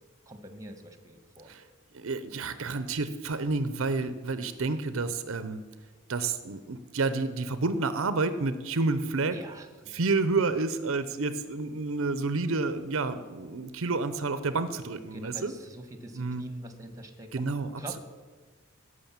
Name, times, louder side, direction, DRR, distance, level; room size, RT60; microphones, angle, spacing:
voice 1, 0.3-1.5 9.3-10.0 15.1-17.4 17.8-18.0, right 1 dB, 15° right, 8 dB, 1.3 m, -44 dB
voice 2, 1.9-5.6 6.1-9.4 9.9-15.5 16.1-16.4 17.3-18.0, right 3 dB, 70° right, 12 dB, 0.7 m, -29 dB
16.0 x 6.4 x 7.3 m, 1.4 s
head